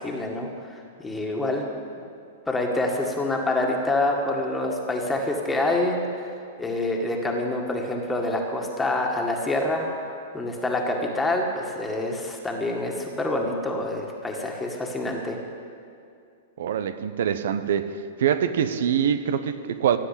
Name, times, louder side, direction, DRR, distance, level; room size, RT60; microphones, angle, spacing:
voice 1, 0.0-1.7 2.5-9.9 10.3-15.4, left 2 dB, 10° left, 0 dB, 1.9 m, -27 dB
voice 2, 16.6-17.9 18.2-20.0, right 8 dB, 70° right, 11 dB, 0.8 m, -24 dB
16.5 x 7.6 x 8.5 m, 2.4 s
hypercardioid pair, 110°, 0 cm